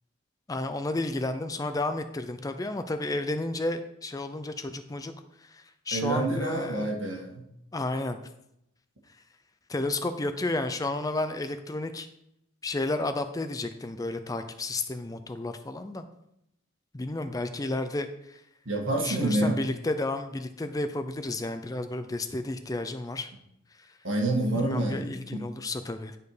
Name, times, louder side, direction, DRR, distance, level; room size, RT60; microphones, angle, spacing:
voice 1, 0.5-5.1 5.4-6.9 7.7-8.2 9.7-12.1 12.6-16.0 16.9-18.4 19.0-23.3 24.5-26.2, left 2 dB, 20° left, 9 dB, 0.4 m, -32 dB
voice 2, 5.9-7.4 18.7-19.6 24.0-25.5, right 2 dB, 75° right, 0 dB, 1.8 m, -28 dB
10.5 x 4.5 x 4.9 m, 0.80 s
head